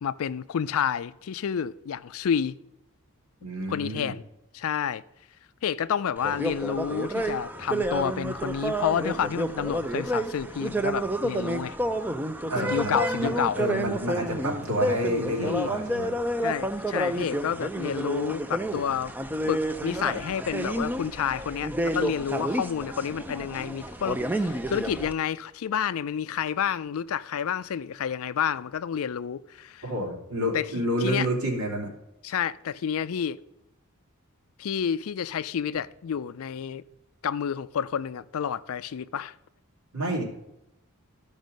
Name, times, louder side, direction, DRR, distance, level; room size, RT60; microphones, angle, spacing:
voice 1, 0.0-2.6 3.7-4.2 4.5-5.0 5.6-11.8 12.6-13.6 15.4-15.7 16.4-19.1 19.5-29.9 30.5-30.7 31.0-31.3 32.2-33.4 34.6-36.8 37.2-39.3, left 8 dB, 65° left, 0.4 m, -29 dB
voice 2, 3.4-4.1 12.5-16.1 29.8-31.9 39.9-40.2, equal, 85° right, 2.8 m, -29 dB
sound 1, 6.2-25.1, right 1 dB, 10° right, 0.5 m, -30 dB
14.0 x 5.4 x 5.2 m
head